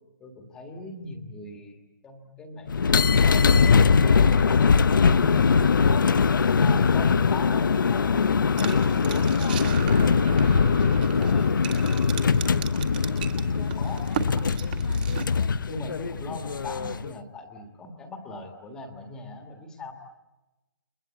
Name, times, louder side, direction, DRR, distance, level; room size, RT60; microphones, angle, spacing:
voice 1, 0.2-5.3 6.5-14.0 14.8-15.3 15.7-19.9, left 2 dB, 5° left, 4 dB, 1.7 m, -41 dB
sound 1, 2.7-17.1, left 5 dB, 75° left, 0.9 m, -21 dB
sound 2, 8.6-15.2, right 9 dB, 25° right, 1.8 m, -37 dB
29.5 x 22.0 x 8.4 m, 1.1 s
hypercardioid pair, 175°, 11 cm